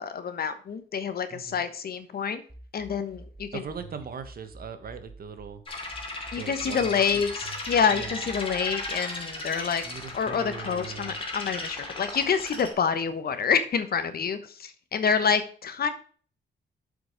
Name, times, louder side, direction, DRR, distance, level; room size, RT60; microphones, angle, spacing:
voice 1, 0.0-2.4 2.7-3.6 6.3-9.8 10.1-15.9, left 6 dB, 50° left, 10 dB, 1.2 m, -27 dB
voice 2, 1.3-1.6 3.5-5.6 6.3-7.2 7.9-8.3 9.3-9.4 9.8-11.2, right 6 dB, 50° right, 9 dB, 1.4 m, -40 dB
sound 1, 2.5-5.5 5.9-8.9, right 2 dB, 20° right, 1.6 m, -48 dB
sound 2, 5.7-12.7, left 2 dB, 25° left, 2.6 m, -36 dB
7.8 x 5.2 x 5.0 m, 0.43 s
cardioid pair, 90°, 20 cm